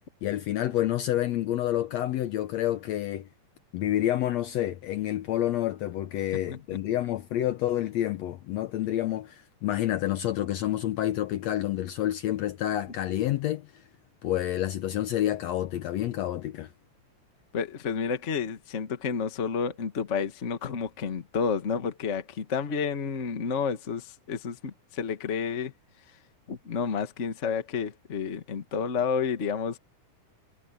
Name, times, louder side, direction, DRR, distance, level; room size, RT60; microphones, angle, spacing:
voice 1, 0.2-3.3 3.7-13.7 14.2-16.7, left 13 dB, 70° left, 1.7 m, -28 dB
voice 2, 17.5-25.7 26.5-29.8, left 6 dB, 35° left, 1.1 m, -30 dB
omnidirectional pair, 3.6 m